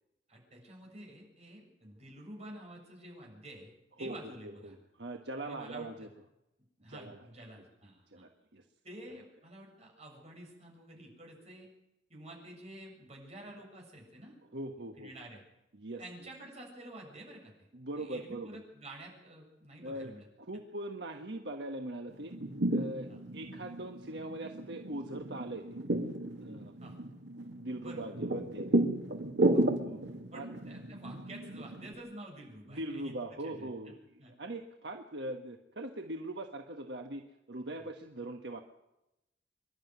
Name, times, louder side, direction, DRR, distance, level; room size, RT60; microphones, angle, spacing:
voice 1, 0.3-3.7 4.0-4.7 5.4-6.1 6.8-8.3 8.8-11.7 12.1-14.4 15.0-15.4 16.0-17.5 18.0-20.3 23.1-23.2 26.8-27.0 27.8-28.1 29.5-29.7 30.3-33.1 33.4-33.7 34.2-34.3, right 1 dB, 35° right, -1 dB, 7.3 m, -49 dB
voice 2, 4.0-6.1 6.9-7.3 8.1-8.6 14.5-15.1 15.7-16.0 17.7-18.6 19.8-20.1 20.4-22.3 22.7-23.1 23.3-25.8 26.4-26.7 27.6-28.8 29.8-30.0 30.3-30.5 32.7-38.6, right 1 dB, 70° right, 3 dB, 1.4 m, -41 dB
sound 1, 22.1-31.9, right 1 dB, 85° right, 2.3 m, -33 dB
26.0 x 11.5 x 9.4 m, 0.92 s
head